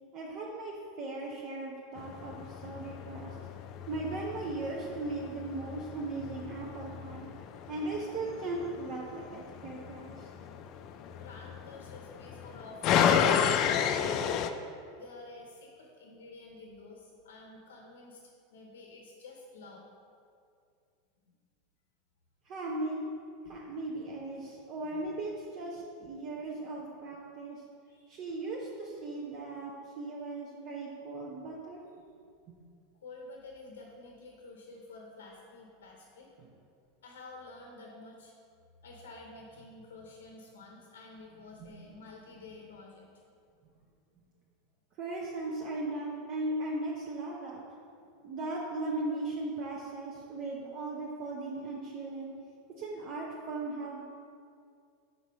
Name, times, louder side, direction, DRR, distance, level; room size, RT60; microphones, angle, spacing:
voice 1, 0.1-3.3 3.9-7.3 7.7-10.3 22.5-23.0 23.5-27.6 28.1-29.7 30.0-31.8 32.5-32.6 36.4-36.5 41.6-41.7 45.0-47.6 48.2-52.3 52.8-54.0, right 2 dB, 50° right, -3 dB, 0.7 m, -37 dB
sound 1, 2.0-14.5, left 8 dB, 50° left, 0.3 m, -32 dB
voice 2, 11.1-13.4 13.8-14.4 15.0-18.2 18.5-19.9 27.9-28.1 33.0-36.3 37.0-38.3 38.8-43.2 48.0-48.1, left 2 dB, 80° left, 0 dB, 0.7 m, -50 dB
5.2 x 4.1 x 4.6 m, 2.3 s
hypercardioid pair, 95°, 0 cm